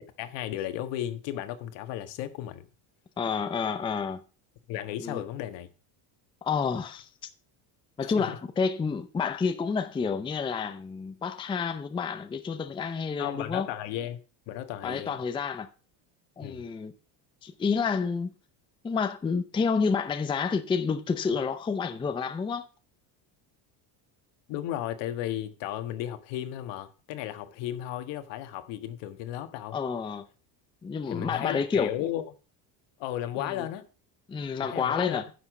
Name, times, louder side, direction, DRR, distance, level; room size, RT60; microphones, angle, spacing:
voice 1, 0.2-2.7 4.7-5.7 8.0-8.4 13.2-14.2 14.5-15.2 16.4-16.6 24.5-29.8 31.1-32.2 33.0-33.9 34.6-35.3, left 12 dB, 70° left, 1.5 m, -34 dB
voice 2, 3.2-4.2 5.0-5.2 6.4-7.1 8.0-13.7 14.8-15.7 16.4-16.9 17.4-18.3 18.8-22.7 29.7-30.2 30.8-31.9 33.4-33.6 34.3-35.2, left 5 dB, 10° left, 0.5 m, -29 dB
9.9 x 6.0 x 5.9 m
cardioid pair, 145°, 45 cm